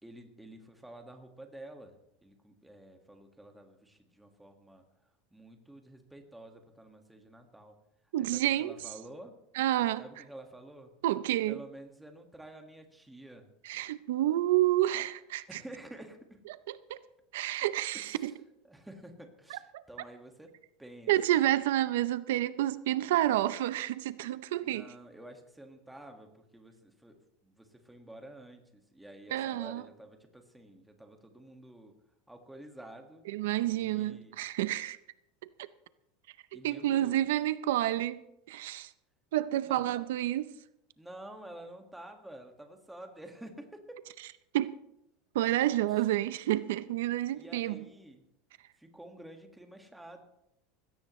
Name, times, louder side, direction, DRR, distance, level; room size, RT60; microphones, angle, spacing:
voice 1, 0.0-9.4 10.0-10.9 11.5-13.5 15.5-16.4 17.9-18.4 18.6-21.5 24.6-32.0 32.3-33.3 33.7-34.4 36.5-37.3 39.6-40.0 41.0-44.1 45.9-46.1 47.3-48.3 48.7-50.3, right 1 dB, 5° right, 1.8 m, -50 dB
voice 2, 8.1-8.7 9.6-10.0 11.0-11.6 13.6-15.4 16.7-17.0 17.3-18.3 19.7-19.8 21.1-24.9 29.3-29.8 33.3-35.0 35.6-35.7 36.5-38.9 39.3-40.5 44.5-44.7 45.3-47.8, right 14 dB, 85° right, 0.6 m, -29 dB
20.0 x 16.5 x 3.2 m
supercardioid pair, 155°, 0 cm